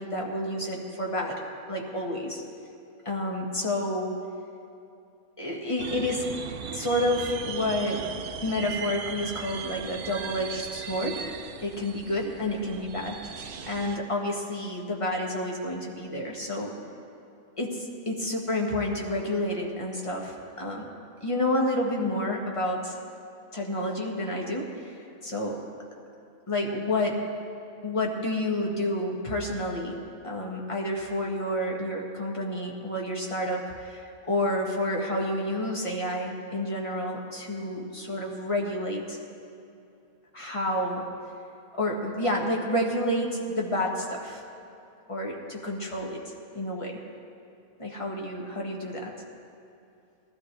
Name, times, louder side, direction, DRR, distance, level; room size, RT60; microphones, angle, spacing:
voice 1, 0.0-1.4 1.7-2.4 3.0-4.2 5.4-6.3 6.7-8.0 8.4-11.2 11.6-16.7 17.6-20.9 21.2-23.0 23.5-25.6 26.5-27.2 27.8-39.2 40.3-41.1 41.8-44.4 45.1-46.2 46.5-47.0 47.8-49.1, left 1 dB, 25° left, -1 dB, 1.6 m, -29 dB
sound 1, 5.8-14.0, right 7 dB, 60° right, 0.5 m, -38 dB
18.5 x 13.0 x 3.4 m, 2.7 s
omnidirectional pair, 1.5 m